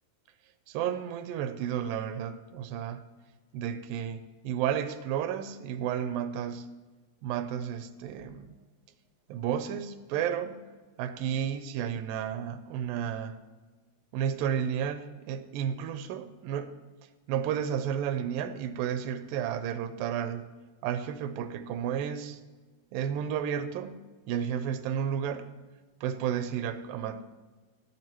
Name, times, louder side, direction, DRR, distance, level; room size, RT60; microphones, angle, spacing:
voice 1, 0.7-3.0 3.5-6.7 7.2-8.6 9.3-10.7 11.0-13.4 14.1-16.7 17.3-20.5 20.8-22.4 22.9-25.5 26.0-27.2, right 9 dB, 85° right, 11 dB, 2.4 m, -32 dB
16.5 x 9.2 x 3.0 m, 1.3 s
omnidirectional pair, 4.1 m